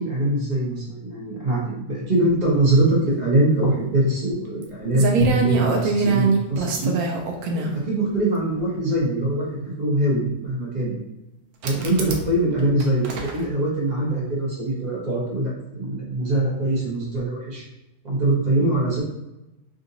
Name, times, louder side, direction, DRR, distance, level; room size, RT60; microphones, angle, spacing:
voice 1, 0.0-6.9 7.4-9.5 9.8-11.0 11.6-17.6 18.0-19.0, right 1 dB, 35° right, -5 dB, 1.0 m, -23 dB
sound 1, 4.6-4.7 4.9-7.7 8.7-8.8 11.6-12.3 12.6-13.4, right 4 dB, 80° right, 1.1 m, -23 dB
Drum, 5.2-8.1, equal, 45° left, 1.1 m, -30 dB
3.7 x 2.6 x 2.7 m, 0.94 s
omnidirectional pair, 1.5 m